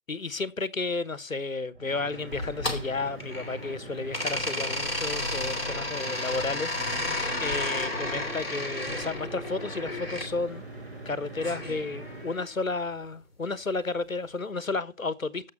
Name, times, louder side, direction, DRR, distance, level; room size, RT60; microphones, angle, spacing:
voice 1, 0.1-10.6 11.0-15.5, left 3 dB, 70° left, 1.1 m, -32 dB
sound 1, 1.7-12.4, right 2 dB, 15° right, 2.5 m, -42 dB
sound 2, 2.3-3.7 4.1-10.3 11.4-12.5, left 1 dB, 45° left, 2.8 m, -32 dB
15.5 x 6.8 x 4.4 m
figure-of-eight pair, 165°, 42 cm